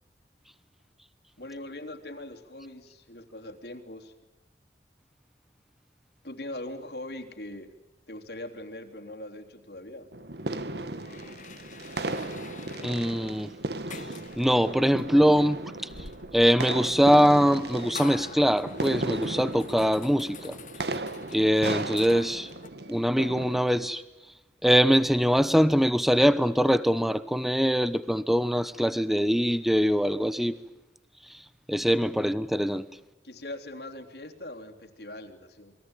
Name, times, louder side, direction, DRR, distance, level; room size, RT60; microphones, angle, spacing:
voice 1, 1.4-4.1 6.2-7.7 8.1-10.1 32.1-32.3 33.2-35.8, left 1 dB, 70° left, 3.3 m, -41 dB
sound 1, 10.1-23.6, right 2 dB, 70° right, 1.8 m, -36 dB
sound 2, 10.7-22.7, left 5 dB, 45° left, 1.9 m, -47 dB
voice 2, 12.8-13.5 14.4-16.1 16.3-20.6 21.3-22.5 22.9-24.0 24.6-30.6 31.3-31.4 31.7-32.9, equal, ahead, 0.9 m, -23 dB
29.0 x 22.5 x 9.1 m
head